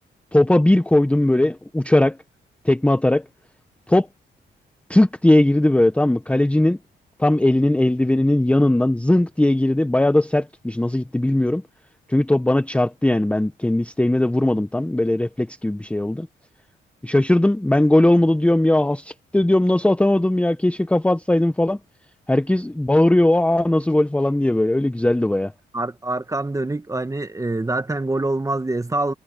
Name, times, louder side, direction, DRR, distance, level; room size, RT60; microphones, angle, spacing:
voice 1, 0.3-2.2 2.6-3.2 3.9-4.1 4.9-6.8 7.2-11.6 12.1-16.3 17.0-21.8 22.3-25.5, left 1 dB, 5° left, 0.7 m, -18 dB
voice 2, 25.7-29.1, right 2 dB, 15° right, 1.4 m, -25 dB
cardioid pair, 80°, 19 cm